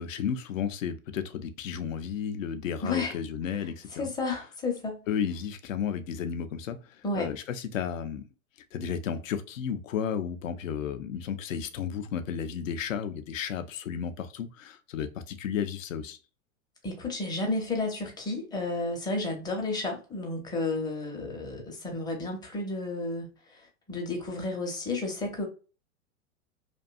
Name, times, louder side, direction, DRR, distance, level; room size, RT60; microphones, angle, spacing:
voice 1, 0.0-4.1 5.1-8.2 8.7-16.2, left 7 dB, 70° left, 0.5 m, -33 dB
voice 2, 2.8-3.1 4.0-5.0 7.0-7.3 16.8-23.3 23.9-25.5, left 2 dB, 10° left, 0.6 m, -32 dB
2.5 x 2.2 x 2.3 m
figure-of-eight pair, 95°, 42 cm